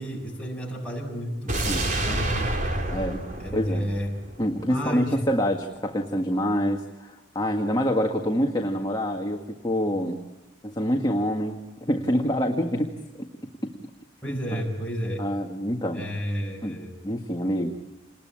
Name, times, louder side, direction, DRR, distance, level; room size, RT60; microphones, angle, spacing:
voice 1, 0.0-2.8 3.4-4.2 4.7-5.2 14.2-15.3 15.9-16.9, equal, 5° left, -1 dB, 7.1 m, -31 dB
sound 1, 1.5-4.6 4.9-5.0, right 1 dB, 45° right, 3.6 m, -28 dB
voice 2, 1.7-2.2 2.9-3.2 3.5-3.8 4.4-10.2 10.6-13.3 13.6-13.7 14.3-14.4 15.2-16.0 16.6-16.8 17.0-17.7, equal, 20° left, 2 dB, 1.8 m, -26 dB
28.5 x 20.5 x 8.8 m, 1.1 s
head